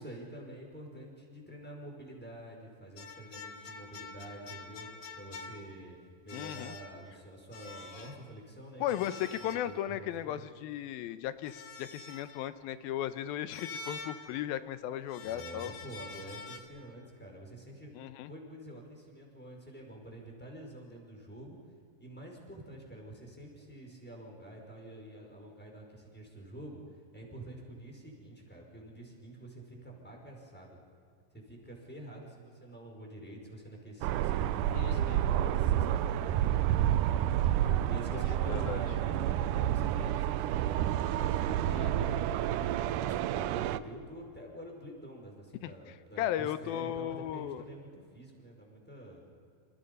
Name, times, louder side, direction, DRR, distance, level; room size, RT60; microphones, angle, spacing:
voice 1, 0.0-4.9 5.2-6.0 6.2-8.8 9.4-10.4 15.2-17.9 18.2-21.6 22.0-30.8 31.3-42.1 43.0-49.2, right 1 dB, 5° left, 0 dB, 5.1 m, -47 dB
sound 1, 3.0-5.9 6.3-7.1 7.5-8.2 8.9-10.1 11.4-12.5 13.5-14.6 15.1-16.6, left 3 dB, 50° left, 2.2 m, -46 dB
voice 2, 6.3-6.8 8.8-15.7 17.9-18.3 34.7-35.2 38.1-38.2 38.5-38.8 41.7-42.2 45.6-45.7 46.2-47.6, left 11 dB, 85° left, 12 dB, 2.7 m, -36 dB
sound 2, 34.0-43.8, right 12 dB, 75° right, 2.0 m, -29 dB
28.0 x 27.5 x 5.5 m, 2.4 s
omnidirectional pair, 4.2 m